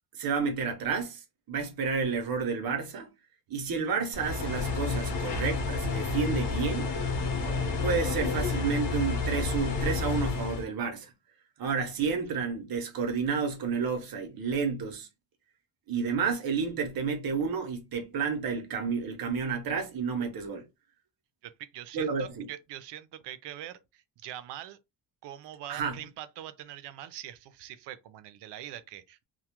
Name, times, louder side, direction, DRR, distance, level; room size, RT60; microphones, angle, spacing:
voice 1, 0.1-3.1 3.5-6.9 7.8-11.1 11.6-15.1 15.9-20.6 21.9-22.5 25.7-26.0, right 5 dB, 60° right, 0.8 m, -30 dB
sound 1, 4.1-10.6, left 4 dB, 80° left, 0.9 m, -30 dB
voice 2, 21.4-24.8 25.2-29.2, right 12 dB, 90° right, 0.5 m, -43 dB
2.3 x 2.1 x 2.8 m
cardioid pair, 105°, 41 cm